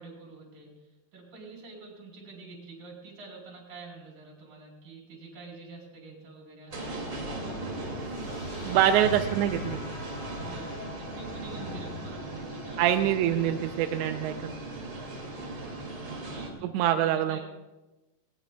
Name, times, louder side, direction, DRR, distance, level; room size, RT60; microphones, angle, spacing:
voice 1, 0.0-7.1 10.3-13.0 15.1-15.7 16.0-17.4, right 3 dB, 50° right, 0 dB, 5.4 m, -47 dB
sound 1, 6.7-16.5, right 1 dB, 30° right, 2.4 m, -37 dB
sound 2, 8.0-16.0, left 2 dB, 85° left, 5.7 m, -49 dB
voice 2, 8.7-9.8 12.8-14.5 16.7-17.4, right 11 dB, 90° right, 6 dB, 3.0 m, -25 dB
19.5 x 19.0 x 2.3 m, 1.1 s
omnidirectional pair, 5.0 m